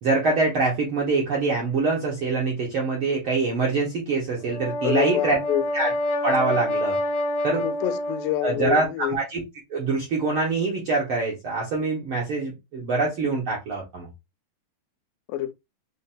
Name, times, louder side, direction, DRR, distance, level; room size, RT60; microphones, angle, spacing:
voice 1, 0.0-5.4 5.7-5.9 6.2-7.0 7.4-7.6 8.4-9.4 9.7-14.1, right 3 dB, 70° right, 1.3 m, -24 dB
Brass instrument, 4.4-8.6, left 1 dB, 65° left, 1.7 m, -27 dB
voice 2, 4.8-5.6 7.6-9.2 15.3-15.5, left 13 dB, 85° left, 2.2 m, -27 dB
5.9 x 2.7 x 2.2 m
omnidirectional pair, 3.9 m